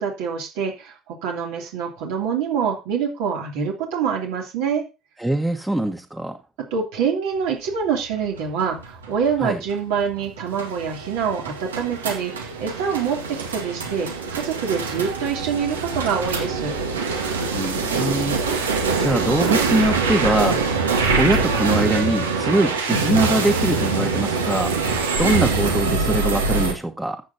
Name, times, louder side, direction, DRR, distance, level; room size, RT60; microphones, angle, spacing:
voice 1, 0.0-4.9 6.7-16.7, right 6 dB, 65° right, 2.9 m, -25 dB
voice 2, 5.2-6.4 9.4-9.6 17.5-20.6 21.2-24.7 25.2-27.2, right 1 dB, 10° right, 1.3 m, -23 dB
sound 1, 8.1-26.7, right 4 dB, 80° right, 1.9 m, -24 dB
14.0 x 8.6 x 2.8 m
figure-of-eight pair, 60°, 0 cm